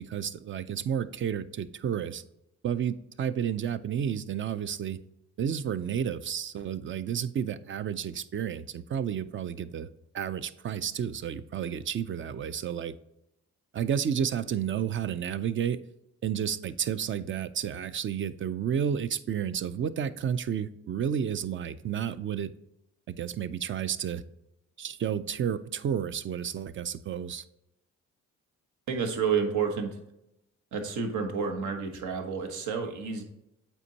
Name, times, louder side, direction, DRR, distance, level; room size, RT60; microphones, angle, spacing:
voice 1, 0.0-2.2 2.6-5.0 5.4-9.9 10.1-12.9 13.7-15.8 16.2-22.5 23.1-24.2 24.8-27.4, right 8 dB, 40° right, 15 dB, 0.4 m, -31 dB
voice 2, 28.9-30.0 30.7-33.2, right 6 dB, 75° right, 5 dB, 1.1 m, -30 dB
8.1 x 4.4 x 2.8 m, 0.86 s
cardioid pair, 90°, 30 cm